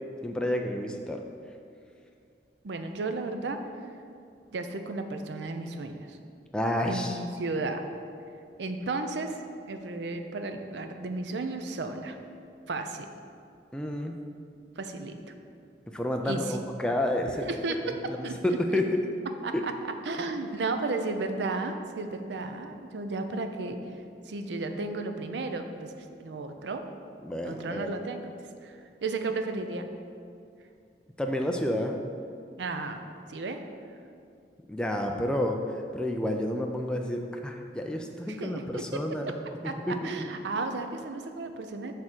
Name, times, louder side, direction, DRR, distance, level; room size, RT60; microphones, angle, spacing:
voice 1, 0.2-1.2 6.5-7.2 13.7-14.1 15.9-17.4 17.8-19.0 19.5-19.6 27.2-27.9 31.2-32.0 34.7-35.6 35.9-39.3 39.9-40.3, left 1 dB, 5° left, 2 dB, 0.3 m, -30 dB
voice 2, 2.6-3.6 4.5-6.2 6.9-7.8 8.6-9.4 9.7-12.2 12.7-13.1 14.8-15.2 16.2-16.6 17.4-18.0 18.2-18.6 19.4-19.7 20.0-23.8 24.3-25.9 26.2-26.9 27.4-28.3 28.6-29.9 32.6-33.6 38.3-39.4 39.6-41.9, right 3 dB, 80° right, 7 dB, 0.5 m, -34 dB
6.5 x 3.6 x 6.1 m, 2.4 s
head